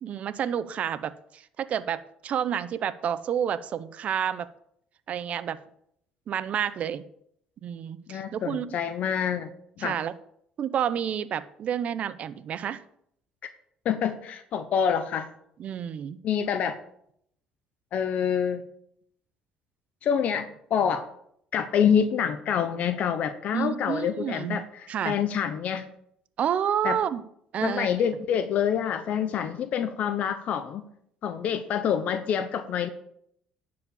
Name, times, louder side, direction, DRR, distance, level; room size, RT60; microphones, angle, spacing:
voice 1, 0.0-4.5 5.1-5.6 6.3-7.0 7.6-8.7 9.8-10.1 10.6-12.8 15.6-16.2 23.5-24.6 24.9-25.2 26.4-27.2 27.5-27.9, right 9 dB, 50° right, 15 dB, 0.7 m, -29 dB
voice 2, 8.1-9.5 9.8-10.0 13.8-15.3 16.2-16.8 17.9-18.6 20.0-21.0 21.5-25.9 26.8-27.0 27.6-30.8 31.2-32.9, left 8 dB, 60° left, 10 dB, 0.8 m, -27 dB
11.0 x 4.9 x 7.0 m, 0.70 s
supercardioid pair, 95°, 3 cm